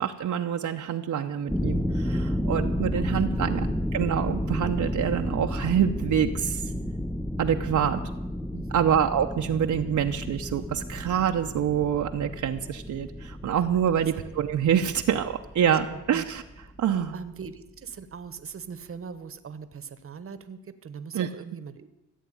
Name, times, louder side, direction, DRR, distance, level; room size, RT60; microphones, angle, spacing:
voice 1, 0.0-3.7 3.9-6.6 7.4-8.0 8.7-16.4 16.8-17.1 21.1-21.3, right 9 dB, 65° right, 4 dB, 0.9 m, -26 dB
sound 1, 1.5-17.3, left 1 dB, ahead, 0.5 m, -32 dB
voice 2, 8.5-9.0 13.9-14.2 15.6-16.2 17.1-21.9, right 6 dB, 45° right, 13 dB, 1.1 m, -41 dB
15.0 x 8.3 x 9.7 m, 0.96 s
cardioid pair, 120°, 31 cm